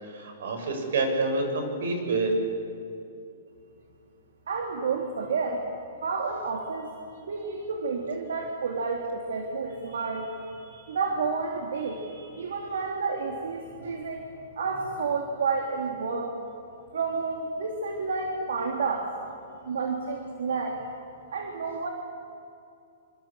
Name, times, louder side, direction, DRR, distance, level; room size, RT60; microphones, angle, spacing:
voice 1, 0.0-2.3, right 3 dB, 70° right, 5 dB, 7.5 m, -28 dB
voice 2, 4.5-5.7 6.0-14.3 14.6-16.3 16.9-19.1 19.6-20.8 21.3-21.9, right 4 dB, 85° right, 1 dB, 3.2 m, -30 dB
27.0 x 25.5 x 7.6 m, 2.6 s
hypercardioid pair, 170°, 0 cm